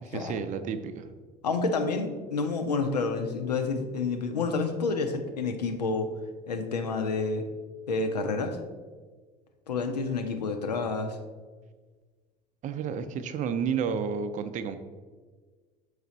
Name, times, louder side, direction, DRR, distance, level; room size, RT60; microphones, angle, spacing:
voice 1, 0.1-1.1 12.6-14.8, right 6 dB, 40° right, 11 dB, 0.5 m, -31 dB
voice 2, 1.4-6.1 6.5-7.5 7.9-8.6 9.7-11.2, left 4 dB, 80° left, 6 dB, 0.7 m, -29 dB
6.6 x 4.8 x 4.0 m, 1.4 s
figure-of-eight pair, 65°, 20 cm